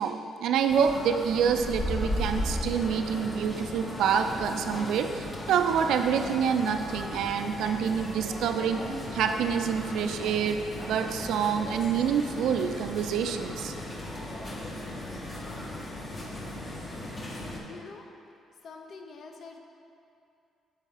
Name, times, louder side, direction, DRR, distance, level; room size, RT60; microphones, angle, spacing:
voice 1, 0.0-8.9 9.1-13.7, right 7 dB, 80° right, 7 dB, 0.3 m, -27 dB
sound 1, 0.7-17.6, left 1 dB, 30° left, 0.9 m, -36 dB
voice 2, 17.6-18.1 18.6-19.6, left 4 dB, 60° left, 3 dB, 0.6 m, -45 dB
7.3 x 3.4 x 4.0 m, 2.5 s
cardioid pair, 90°, 0 cm